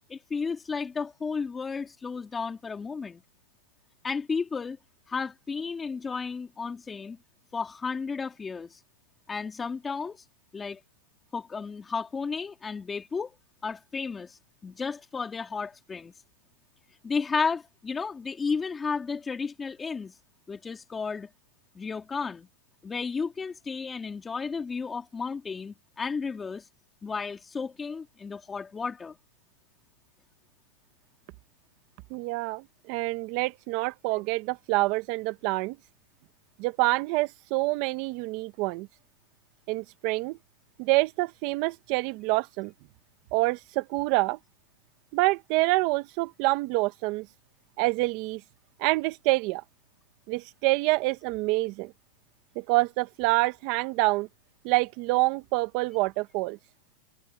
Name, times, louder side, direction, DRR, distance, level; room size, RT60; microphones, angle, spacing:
voice 1, 0.1-3.2 4.0-4.8 5.1-7.2 7.5-8.8 9.3-10.2 10.5-10.8 11.3-13.3 13.6-16.1 17.0-20.1 20.5-21.3 21.7-22.5 22.8-26.7 27.0-29.2 34.1-34.2, left 5 dB, 15° left, 3.2 m, -33 dB
voice 2, 32.1-35.8 36.6-38.9 39.7-40.4 40.8-42.7 43.3-44.4 45.1-47.3 47.8-48.4 48.8-49.6 50.3-51.9 52.5-54.3 54.6-56.6, right 22 dB, 45° right, 1.2 m, -26 dB
supercardioid pair, 145°, 0 cm